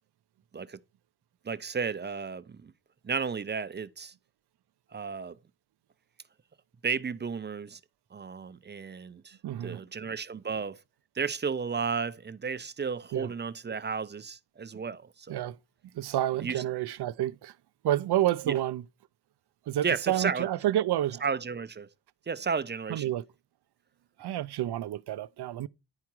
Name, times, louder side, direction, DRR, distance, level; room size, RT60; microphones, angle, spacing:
voice 1, 1.4-2.7 3.0-4.1 4.9-5.4 6.8-7.8 8.1-10.8 11.2-15.4 16.4-16.6 18.5-18.6 19.8-20.5 21.2-21.9 22.3-23.1, right 5 dB, 30° right, 0.4 m, -33 dB
voice 2, 9.4-9.8 13.1-13.3 15.3-15.6 15.9-17.5 17.8-18.8 19.7-21.2 22.9-23.2 24.2-25.7, right 12 dB, 85° right, 0.5 m, -29 dB
10.5 x 4.8 x 4.5 m
wide cardioid pair, 165°, 38 cm